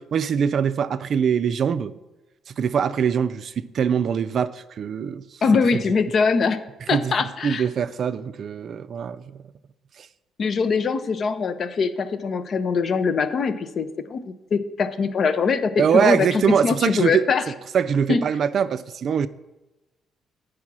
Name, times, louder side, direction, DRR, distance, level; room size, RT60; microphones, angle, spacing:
voice 1, 0.0-1.9 2.5-5.3 6.9-7.1 7.4-9.4 10.0-10.1 15.8-17.3 17.7-19.3, right 7 dB, 55° right, 0.3 m, -23 dB
voice 2, 5.4-6.6 6.9-7.6 10.4-14.2 14.5-17.4 18.1-18.2, left 5 dB, 50° left, 0.6 m, -22 dB
8.4 x 4.8 x 6.0 m
cardioid pair, 95°, 0 cm